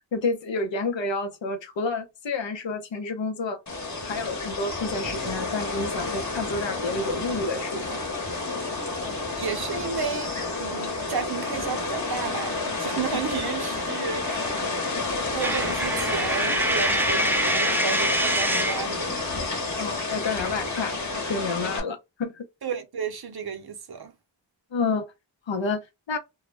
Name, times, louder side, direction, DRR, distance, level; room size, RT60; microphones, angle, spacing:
voice 1, 0.1-3.6 4.0-8.0 19.8-21.0 21.3-22.3 24.7-25.1 25.5-25.8 26.1-26.2, left 3 dB, 80° left, 0.7 m, -29 dB
sound 1, 3.7-21.8, left 3 dB, 40° left, 1.0 m, -30 dB
voice 2, 9.4-10.3 10.6-14.5 15.3-19.2 22.6-24.1, right 6 dB, 60° right, 0.6 m, -32 dB
Coin (dropping), 15.4-18.9, right 1 dB, 5° right, 0.4 m, -25 dB
2.1 x 2.0 x 3.1 m
wide cardioid pair, 60°, 44 cm